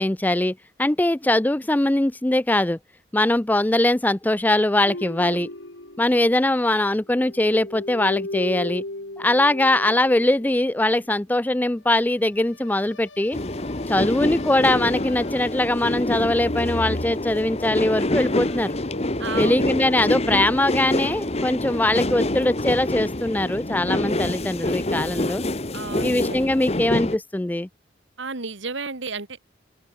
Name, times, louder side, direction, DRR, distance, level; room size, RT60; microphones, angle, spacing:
voice 1, 0.0-2.8 3.1-5.5 6.0-8.8 9.2-13.4 13.9-18.8 19.4-25.4 26.0-27.7, left 1 dB, 10° left, 0.4 m, -21 dB
sound 1, 4.9-6.8 7.1-10.9 12.5-15.8 16.1-20.4, left 1 dB, 75° left, 3.3 m, -37 dB
sound 2, 13.3-27.2, left 1 dB, 30° left, 1.2 m, -26 dB
voice 2, 19.2-19.7 25.7-26.5 28.2-29.4, right 4 dB, 70° right, 2.0 m, -32 dB
open air
head